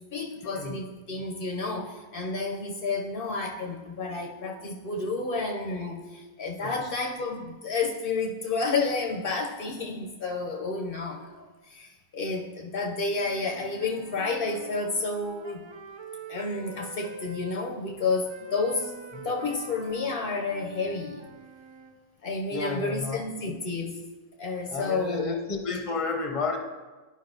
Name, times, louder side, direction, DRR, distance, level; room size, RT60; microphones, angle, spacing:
voice 1, 0.0-15.6 16.3-19.0 19.2-21.3 22.2-24.0 24.4-25.3, left 3 dB, 65° left, 2 dB, 0.8 m, -30 dB
Wind instrument woodwind instrument, 13.2-17.6 18.3-22.0, right 4 dB, 45° right, 0.3 m, -45 dB
voice 2, 22.5-23.2 24.7-26.6, left 4 dB, 35° left, 3 dB, 0.8 m, -31 dB
11.5 x 5.1 x 2.6 m, 1.3 s
omnidirectional pair, 1.0 m